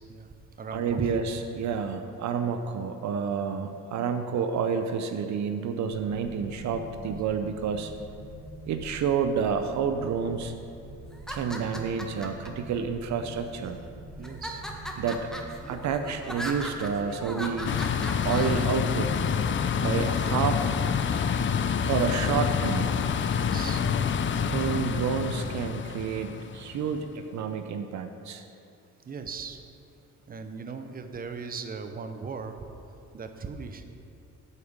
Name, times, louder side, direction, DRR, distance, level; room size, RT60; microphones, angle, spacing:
voice 1, 0.1-1.1 14.2-14.8 23.2-23.9 29.1-29.6 30.3-32.7 33.1-33.8, right 5 dB, 30° right, 7 dB, 0.7 m, -38 dB
voice 2, 0.7-7.9 8.7-10.5 11.3-13.8 15.0-15.3 15.7-17.8 18.2-19.1 19.8-20.8 21.8-22.9 24.4-28.4, right 6 dB, 65° right, 7 dB, 0.6 m, -29 dB
sound 1, 5.8-24.6, right 1 dB, 50° right, 1.9 m, -45 dB
sound 2, 11.1-12.5 13.2-13.8 14.2-18.6, equal, ahead, 1.0 m, -38 dB
sound 3, 17.6-26.9, left 7 dB, 40° left, 0.5 m, -27 dB
8.3 x 5.1 x 7.1 m, 2.6 s
cardioid pair, 90°, 30 cm